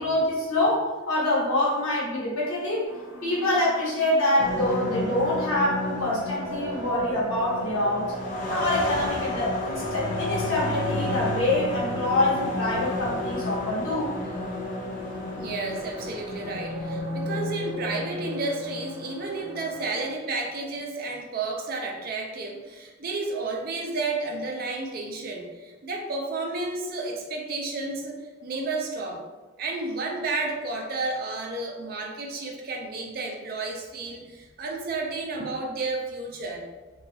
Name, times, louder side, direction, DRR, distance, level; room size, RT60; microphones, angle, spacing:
voice 1, 0.0-2.9 3.2-8.1 8.5-14.2, left 1 dB, 75° left, -5 dB, 0.9 m, -25 dB
sound 1, 2.9-20.1, left 1 dB, 20° right, 1.3 m, -37 dB
sound 2, 4.4-18.2, left 1 dB, 40° left, 0.5 m, -32 dB
voice 2, 15.4-29.2 29.6-36.7, right 3 dB, 45° right, 1 dB, 0.4 m, -32 dB
2.7 x 2.3 x 2.6 m, 1.2 s
head